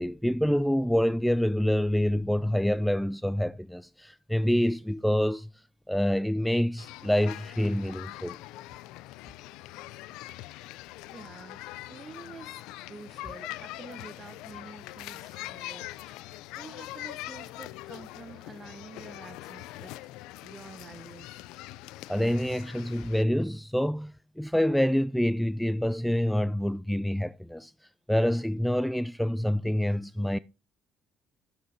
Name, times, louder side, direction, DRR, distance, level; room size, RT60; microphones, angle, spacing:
voice 1, 0.0-8.4 22.1-27.7 28.1-30.4, equal, 5° left, 0.4 m, -27 dB
sound 1, 6.8-23.2, left 17 dB, 75° left, 0.4 m, -43 dB
voice 2, 11.1-16.3 16.5-20.0 20.4-21.4, right 4 dB, 30° right, 1.3 m, -48 dB
12.0 x 10.0 x 2.9 m
hypercardioid pair, 55°, 0 cm